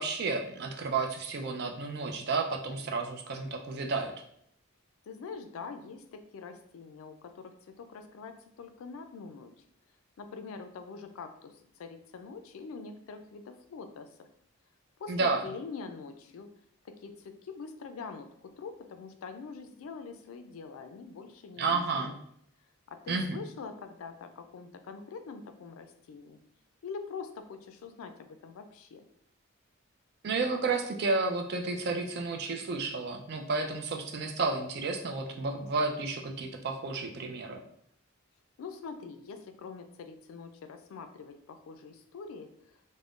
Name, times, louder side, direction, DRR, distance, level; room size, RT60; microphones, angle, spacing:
voice 1, 0.0-4.1 15.1-15.5 21.6-22.1 23.1-23.4 30.2-37.6, right 3 dB, 50° right, 3 dB, 0.4 m, -31 dB
voice 2, 5.1-9.5 10.2-14.3 15.0-16.5 16.8-18.3 18.6-22.2 22.9-26.4 26.8-29.0 38.6-42.7, left 5 dB, 75° left, 7 dB, 0.3 m, -44 dB
2.4 x 2.0 x 3.5 m, 0.69 s
head